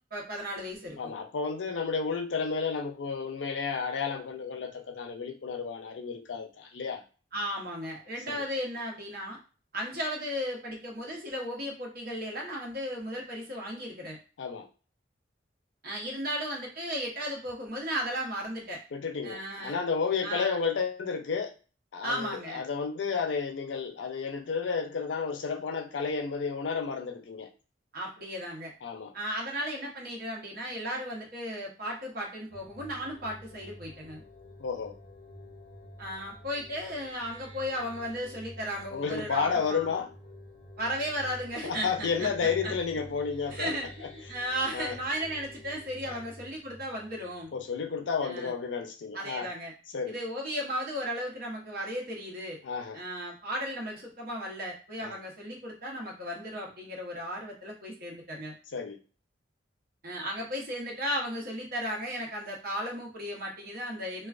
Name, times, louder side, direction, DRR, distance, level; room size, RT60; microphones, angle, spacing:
voice 1, 0.1-1.0 7.3-9.4 9.7-14.2 15.8-18.8 19.2-19.8 20.2-20.6 22.0-22.6 27.9-28.7 29.1-34.2 36.0-39.9 40.8-42.7 43.5-47.5 48.2-48.5 49.1-49.7 50.1-52.6 52.9-58.5 60.0-64.3, equal, 55° right, -2 dB, 0.8 m, -35 dB
voice 2, 1.0-7.0 8.3-8.5 14.4-14.7 18.9-21.5 21.9-27.5 28.8-29.1 34.6-34.9 38.9-40.1 41.6-43.7 44.7-45.0 46.0-46.2 47.5-49.5 49.9-50.2 52.6-53.0 55.0-55.1 58.7-59.0, left 5 dB, 85° left, 6 dB, 0.4 m, -32 dB
sound 1, 32.5-48.0, equal, 25° left, 1.0 m, -49 dB
2.3 x 2.3 x 2.4 m, 0.35 s
head